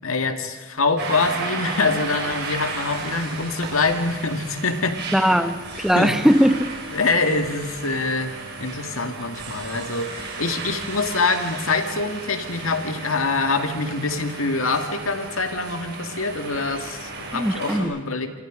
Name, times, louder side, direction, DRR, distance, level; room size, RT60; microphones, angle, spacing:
voice 1, 0.0-5.0 6.0-6.1 6.9-8.3 8.6-18.4, left 3 dB, 80° left, 7 dB, 2.2 m, -25 dB
sound 1, 1.0-17.8, right 3 dB, 50° right, 5.2 m, -34 dB
voice 2, 5.1-6.7 17.3-17.9, equal, ahead, 9 dB, 1.0 m, -19 dB
28.0 x 24.5 x 5.2 m, 1.2 s
head